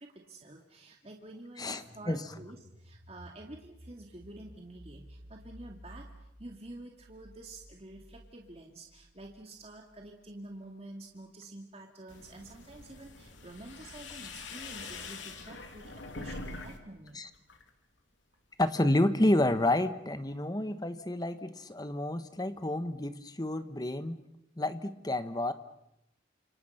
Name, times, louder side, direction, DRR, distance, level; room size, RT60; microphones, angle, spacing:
voice 1, 0.0-17.2, right 2 dB, 30° right, 1 dB, 2.4 m, -49 dB
voice 2, 1.6-2.2 17.1-17.3 18.6-24.2 24.6-25.5, left 1 dB, 20° left, 11 dB, 1.2 m, -29 dB
sound 1, 1.8-10.5, equal, 65° right, 3.0 m, -54 dB
sound 2, 12.1-16.8 17.1-17.7, left 3 dB, 75° left, 2.9 m, -44 dB
29.5 x 27.5 x 5.8 m, 0.82 s
head